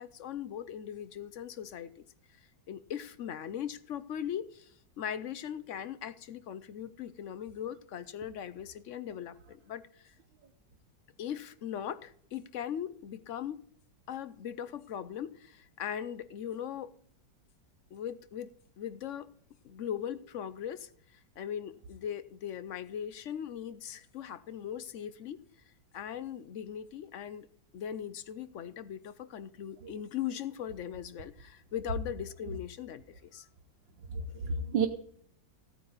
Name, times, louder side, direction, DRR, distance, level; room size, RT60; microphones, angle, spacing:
voice 1, 0.0-2.0 2.7-4.7 5.0-10.1 11.2-13.6 14.1-16.9 17.9-19.3 19.6-20.9 21.4-25.4 25.9-27.5 27.7-33.5, left 9 dB, 65° left, 0.7 m, -39 dB
voice 2, 34.1-34.9, right 5 dB, 80° right, 1.8 m, -31 dB
16.0 x 9.3 x 4.0 m
omnidirectional pair, 2.0 m